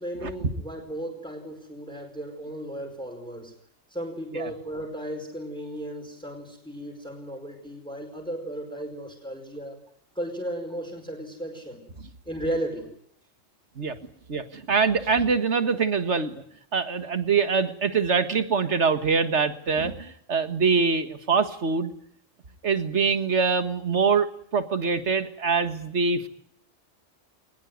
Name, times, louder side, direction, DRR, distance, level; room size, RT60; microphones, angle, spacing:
voice 1, 0.0-3.5 3.9-9.8 10.1-11.8 12.2-12.9, right 1 dB, 5° left, 2 dB, 4.8 m, -35 dB
voice 2, 14.3-16.4 16.7-21.9 22.6-26.3, right 5 dB, 60° right, 10 dB, 2.0 m, -24 dB
21.0 x 20.0 x 9.5 m, 0.67 s
omnidirectional pair, 1.3 m